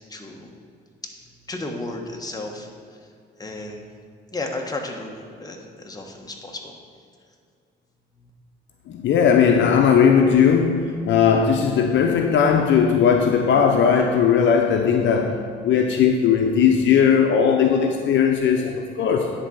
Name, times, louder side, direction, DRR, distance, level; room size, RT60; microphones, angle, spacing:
voice 1, 0.1-0.5 1.0-1.1 1.4-2.7 3.4-3.8 4.3-6.7 8.2-8.3, left 2 dB, 20° left, 1 dB, 1.2 m, -33 dB
voice 2, 8.9-15.4 15.6-19.3, left 7 dB, 70° left, 3 dB, 0.7 m, -18 dB
10.0 x 4.1 x 6.3 m, 2.3 s
cardioid pair, 90°, 20 cm